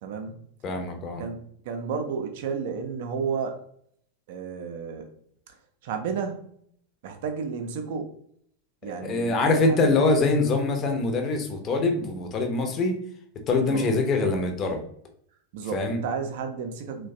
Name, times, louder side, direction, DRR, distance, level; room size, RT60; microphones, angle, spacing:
voice 1, 0.0-0.4 1.2-1.4 1.7-3.6 4.3-5.1 5.5-5.6 5.8-6.5 7.0-8.1 8.8-9.8 13.7-13.9 15.5-17.1, right 6 dB, 50° right, 6 dB, 0.5 m, -32 dB
voice 2, 0.6-1.2 9.0-13.0 13.5-14.8 15.7-16.0, left 3 dB, 30° left, 4 dB, 0.6 m, -24 dB
3.1 x 2.2 x 2.6 m, 0.65 s
figure-of-eight pair, 90°, 0 cm